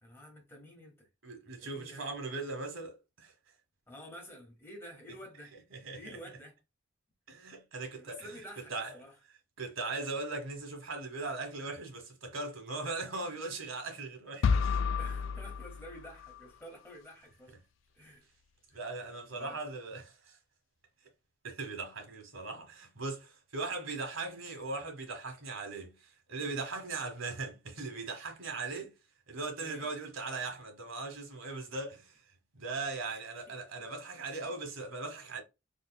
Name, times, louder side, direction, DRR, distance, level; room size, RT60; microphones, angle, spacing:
voice 1, 0.0-1.1 1.5-2.1 3.9-5.5 5.9-6.6 8.0-9.1 15.0-17.6 17.9-18.2 18.7-18.8 19.3-19.6 22.5-22.6 29.6-29.9 33.1-33.2 33.5-33.9 34.4-34.6, equal, 10° left, 1.5 m, -50 dB
voice 2, 1.2-3.3 5.7-6.2 7.3-8.3 8.7-8.9 9.6-14.8 17.5-17.6 18.7-20.4 21.4-28.9 29.3-32.2 32.5-35.4, right 3 dB, 85° right, 1.3 m, -39 dB
sound 1, 14.4-16.5, left 5 dB, 70° left, 0.3 m, -31 dB
4.2 x 3.2 x 2.2 m
head